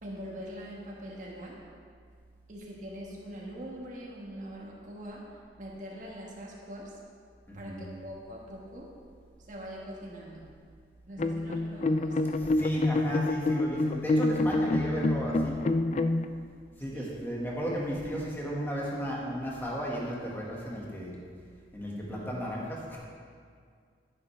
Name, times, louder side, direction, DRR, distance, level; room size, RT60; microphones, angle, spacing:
voice 1, 0.0-1.6 2.5-7.0 7.5-8.9 9.4-10.4 11.1-12.3 16.9-17.2 21.9-22.2, equal, 45° right, -3 dB, 1.5 m, -43 dB
voice 2, 7.5-7.8 12.4-15.6 16.8-21.1 21.7-23.0, equal, 10° left, -4 dB, 1.8 m, -34 dB
sound 1, 11.2-16.3, left 2 dB, 40° left, 0.4 m, -27 dB
11.5 x 10.5 x 3.4 m, 2.1 s
head